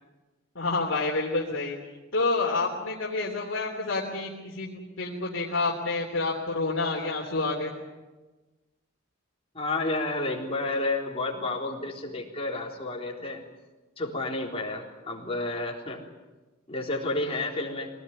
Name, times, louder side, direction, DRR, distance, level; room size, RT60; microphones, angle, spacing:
voice 1, 0.5-1.8 2.1-7.7, left 3 dB, 65° left, -3 dB, 3.3 m, -28 dB
voice 2, 9.5-13.4 14.0-16.0 16.7-17.9, left 2 dB, 30° left, -1 dB, 3.8 m, -31 dB
23.5 x 18.5 x 9.7 m, 1.2 s
head